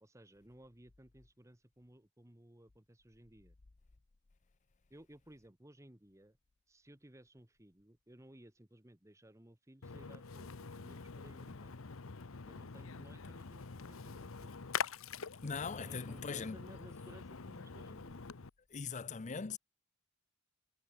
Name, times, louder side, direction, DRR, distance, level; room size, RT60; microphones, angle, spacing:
voice 1, 0.0-3.5 4.9-6.4 6.7-11.7 12.4-14.6 15.2-18.2, right 1 dB, 15° right, 1.3 m, -59 dB
Splash splatter, 9.8-18.5, left 5 dB, 80° left, 0.9 m, -45 dB
voice 2, 15.4-16.6 18.7-19.6, left 5 dB, 35° left, 0.6 m, -40 dB
head